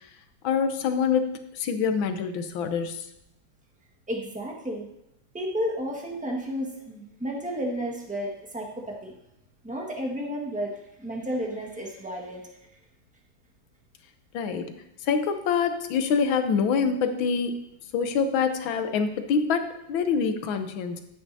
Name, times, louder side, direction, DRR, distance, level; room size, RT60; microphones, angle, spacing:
voice 1, 0.4-3.0 14.3-14.7 15.0-17.5 17.9-21.0, left 6 dB, 85° left, 8 dB, 1.6 m, -25 dB
voice 2, 4.1-4.9 5.3-9.1 9.6-12.4, equal, 5° right, -1 dB, 1.3 m, -32 dB
11.5 x 9.4 x 2.7 m, 0.82 s
omnidirectional pair, 2.1 m